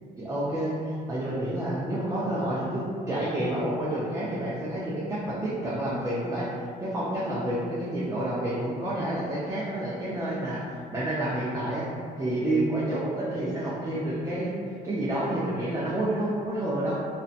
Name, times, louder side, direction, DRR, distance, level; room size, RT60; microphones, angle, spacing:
voice 1, 0.2-6.5 6.8-11.9 12.2-14.5 14.8-16.9, right 1 dB, 20° right, -8 dB, 0.4 m, -29 dB
2.7 x 2.0 x 2.5 m, 2.2 s
cardioid pair, 110°, 17 cm